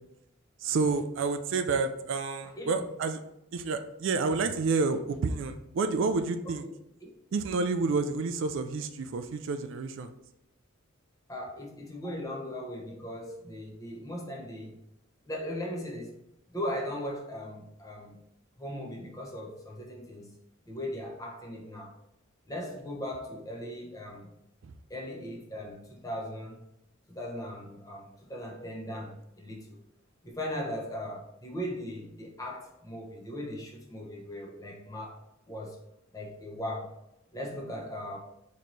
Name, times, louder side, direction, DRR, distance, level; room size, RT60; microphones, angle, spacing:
voice 1, 0.6-3.2 3.5-6.7 7.3-10.1 24.6-24.7, right 4 dB, 60° right, 8 dB, 0.3 m, -29 dB
voice 2, 11.3-14.7 15.3-16.2 16.5-18.2 18.6-20.3 20.7-21.9 22.5-24.3 24.9-26.6 27.1-29.8 30.2-35.2 35.5-35.8 36.1-36.9 37.3-38.2, left 1 dB, 15° left, -1 dB, 0.8 m, -38 dB
4.4 x 3.1 x 3.9 m, 0.83 s
head